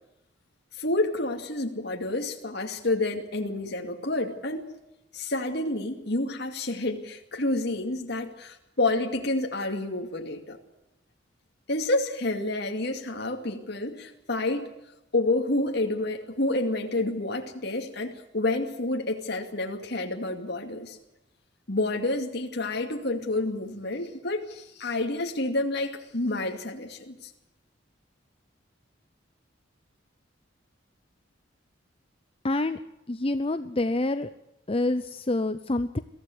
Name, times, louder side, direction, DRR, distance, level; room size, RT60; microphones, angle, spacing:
voice 1, 0.8-4.7 5.1-10.6 11.7-14.6 15.1-21.0 21.7-27.3, left 2 dB, 60° left, 2 dB, 2.4 m, -29 dB
voice 2, 32.4-32.8 33.1-34.3 34.7-36.0, left 2 dB, 30° left, 11 dB, 0.7 m, -27 dB
23.0 x 15.5 x 8.0 m, 0.91 s
head